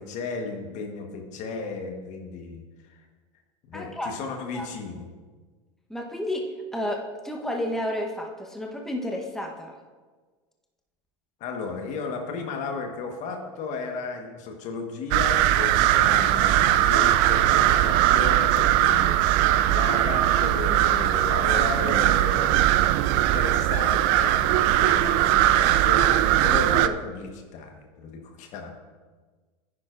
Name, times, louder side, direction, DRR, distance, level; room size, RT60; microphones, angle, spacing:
voice 1, 0.0-2.6 2.9-3.0 3.7-5.1 11.4-19.2 19.7-22.5 23.1-28.7, left 4 dB, 55° left, 4 dB, 1.4 m, -34 dB
voice 2, 3.7-4.1 4.5-4.7 5.9-6.5 6.7-9.7, left 1 dB, 5° left, 1 dB, 1.0 m, -31 dB
sound 1, 15.1-26.9, right 13 dB, 60° right, 0.4 m, -20 dB
10.5 x 9.8 x 2.6 m, 1.4 s
hypercardioid pair, 90°, 15 cm